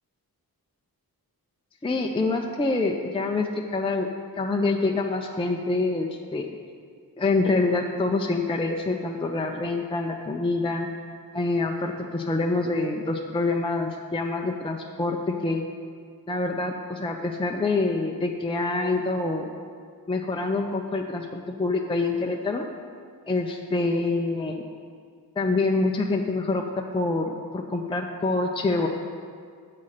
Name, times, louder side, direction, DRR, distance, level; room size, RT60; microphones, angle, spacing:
voice 1, 1.8-4.1 4.4-6.5 7.2-10.9 11.3-15.6 16.3-19.5 20.1-22.6 23.3-24.6 25.4-26.6 26.9-28.9, left 3 dB, 15° left, 2 dB, 0.5 m, -26 dB
7.5 x 5.6 x 6.5 m, 2.1 s
wide cardioid pair, 95°, 37 cm